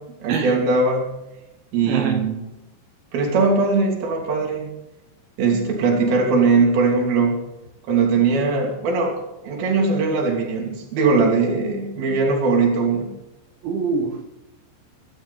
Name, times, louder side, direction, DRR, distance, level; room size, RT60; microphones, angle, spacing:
voice 1, 0.2-1.1 1.7-2.4 3.1-4.7 5.4-7.4 7.9-9.2 9.4-13.1, right 4 dB, 55° right, 0 dB, 4.7 m, -20 dB
voice 2, 1.8-2.3 13.6-14.3, right 5 dB, 75° right, 3 dB, 3.7 m, -24 dB
23.0 x 11.5 x 4.2 m, 0.97 s
omnidirectional pair, 5.5 m